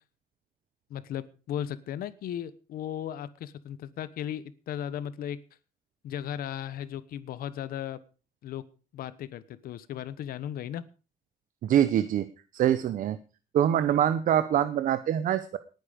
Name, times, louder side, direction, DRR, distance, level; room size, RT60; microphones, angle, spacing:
voice 1, 0.9-5.4 6.0-8.0 8.4-8.6 8.9-10.8, left 10 dB, 80° left, 16 dB, 1.1 m, -36 dB
voice 2, 11.6-12.3 12.5-13.2 13.5-15.6, right 10 dB, 65° right, 12 dB, 0.9 m, -24 dB
19.0 x 9.5 x 5.2 m, 0.36 s
cardioid pair, 165°, 15 cm